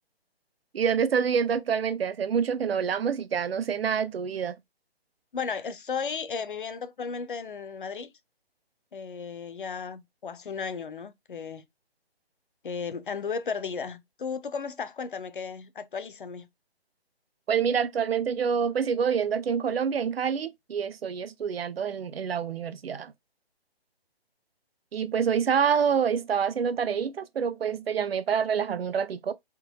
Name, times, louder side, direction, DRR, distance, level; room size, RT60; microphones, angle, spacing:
voice 1, 0.7-4.6 17.5-23.1 24.9-29.3, right 7 dB, 70° right, 0.6 m, -27 dB
voice 2, 5.3-8.1 8.9-11.6 12.6-16.5, left 5 dB, 55° left, 0.5 m, -34 dB
3.7 x 2.9 x 2.8 m
hypercardioid pair, 170°, 31 cm